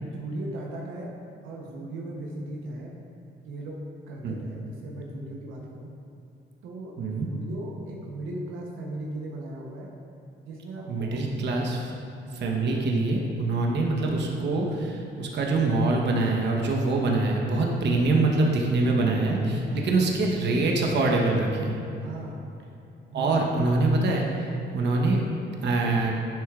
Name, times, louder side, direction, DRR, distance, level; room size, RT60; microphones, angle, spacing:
voice 1, 0.0-1.1 1.4-2.9 3.4-3.8 4.1-5.9 6.6-9.9 10.4-11.2 12.5-12.9 15.4-15.7 17.0-17.1 18.8-20.0 22.0-22.5 23.1-23.9, right 2 dB, 85° right, -2 dB, 0.9 m, -38 dB
voice 2, 7.0-7.3 10.9-11.9 12.3-21.7 23.1-25.2 25.6-26.2, right 2 dB, 60° right, 0 dB, 1.0 m, -24 dB
10.0 x 6.4 x 2.4 m, 2.7 s
cardioid pair, 90°, 20 cm